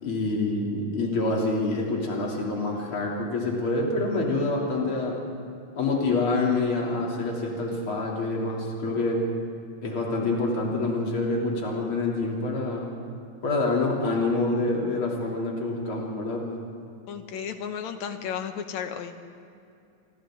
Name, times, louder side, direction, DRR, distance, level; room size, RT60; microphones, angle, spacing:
voice 1, 0.0-5.2 5.8-9.2 9.8-12.9 13.4-16.5, left 2 dB, 45° left, -2 dB, 3.9 m, -26 dB
voice 2, 17.1-19.2, left 7 dB, 75° left, 7 dB, 2.4 m, -33 dB
30.0 x 23.0 x 3.9 m, 2.5 s
omnidirectional pair, 3.4 m